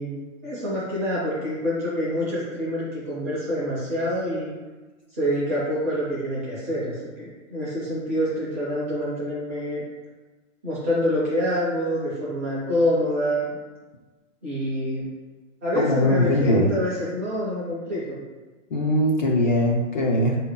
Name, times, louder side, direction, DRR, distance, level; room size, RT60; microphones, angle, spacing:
voice 1, 0.0-4.6 5.1-9.8 10.6-13.6 14.4-15.0 15.6-18.2, equal, 10° right, -9 dB, 0.5 m, -26 dB
voice 2, 15.8-16.7 18.7-20.4, left 1 dB, 40° left, -1 dB, 0.4 m, -21 dB
4.4 x 2.7 x 3.6 m, 1.2 s
hypercardioid pair, 175°, 38 cm